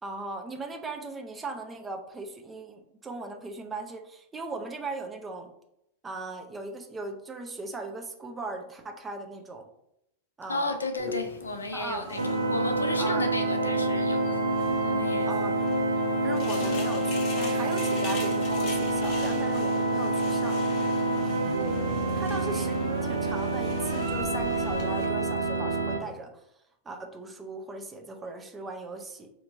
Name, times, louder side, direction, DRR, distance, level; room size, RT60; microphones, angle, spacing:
voice 1, 0.0-5.5 6.0-9.7 10.4-10.8 11.7-12.2 13.0-13.3 15.3-15.7 16.2-20.6 21.7-26.3 26.8-29.3, right 3 dB, 15° right, 0.6 m, -38 dB
voice 2, 10.5-14.4 14.8-15.3 22.3-22.4, left 2 dB, 75° left, 0.4 m, -33 dB
sound 1, 11.0-25.1, left 3 dB, 40° left, 0.8 m, -43 dB
sound 2, 12.2-26.0, right 2 dB, 75° right, 0.5 m, -27 dB
4.3 x 2.9 x 2.5 m
figure-of-eight pair, 90°, 0 cm